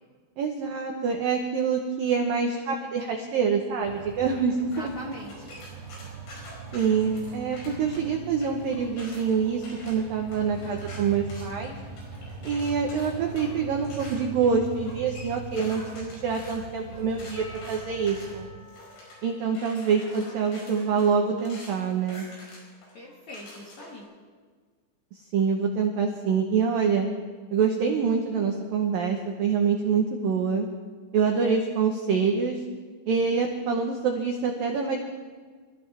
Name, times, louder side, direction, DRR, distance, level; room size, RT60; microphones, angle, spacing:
voice 1, 0.4-4.8 6.7-11.7 12.4-18.5 19.2-22.3 25.3-27.1 27.5-30.7 31.1-32.6 33.1-35.0, right 6 dB, 80° right, 2 dB, 2.0 m, -26 dB
sound 1, 3.8-18.5, right 5 dB, 50° right, 4.1 m, -41 dB
voice 2, 4.6-5.6 22.9-24.1, left 1 dB, 50° left, -2 dB, 2.4 m, -42 dB
sound 2, 4.7-8.0 8.4-24.0, left 1 dB, 75° left, 7.3 m, -47 dB
Percussion / Church bell, 17.4-22.1, left 1 dB, 25° left, 3.7 m, -52 dB
26.5 x 14.5 x 3.5 m, 1.5 s
omnidirectional pair, 5.7 m